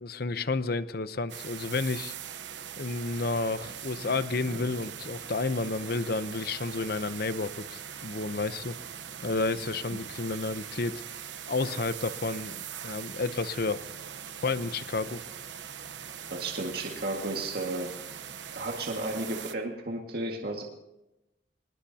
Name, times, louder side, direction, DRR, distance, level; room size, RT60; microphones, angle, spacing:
voice 1, 0.0-2.1 2.8-8.8 9.2-11.0 11.5-13.8 14.4-15.2, left 3 dB, 55° left, 13 dB, 0.8 m, -31 dB
sound 1, 1.3-19.5, right 8 dB, 85° right, 1.0 m, -41 dB
voice 2, 16.3-17.9 18.6-20.6, right 2 dB, 60° right, 1 dB, 1.9 m, -33 dB
23.5 x 20.0 x 2.9 m, 0.93 s
head